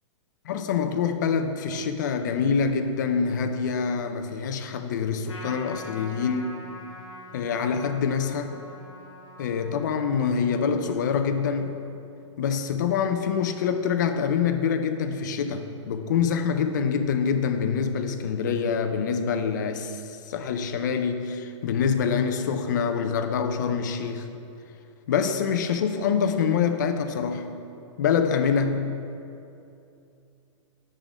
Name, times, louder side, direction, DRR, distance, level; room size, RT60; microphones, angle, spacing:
voice 1, 0.5-6.5 7.3-8.6 9.4-11.8 12.4-24.3 25.1-27.5 28.0-29.0, left 6 dB, 35° left, 7 dB, 0.4 m, -25 dB
Trumpet, 5.3-12.0, left 1 dB, 60° left, 1.5 m, -45 dB
9.1 x 3.7 x 5.0 m, 2.7 s
hypercardioid pair, 170°, 16 cm